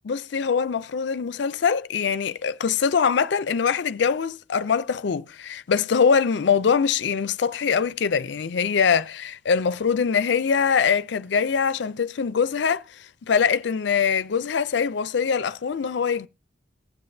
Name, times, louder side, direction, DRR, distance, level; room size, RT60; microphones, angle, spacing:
voice 1, 0.1-16.3, left 6 dB, 65° left, 0.4 m, -23 dB
19.0 x 7.7 x 2.7 m
head